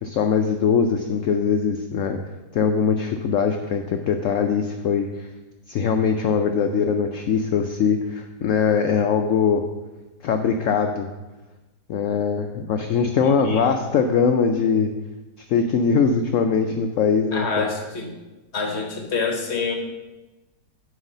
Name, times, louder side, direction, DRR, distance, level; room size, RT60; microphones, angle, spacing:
voice 1, 0.0-2.2 2.5-5.3 5.7-9.6 10.2-11.1 11.9-14.9 15.5-17.7, left 6 dB, 85° left, 5 dB, 0.6 m, -21 dB
voice 2, 17.3-18.2 18.5-19.7, left 4 dB, 50° left, 3 dB, 0.9 m, -26 dB
9.2 x 3.2 x 6.6 m, 1.1 s
omnidirectional pair, 1.9 m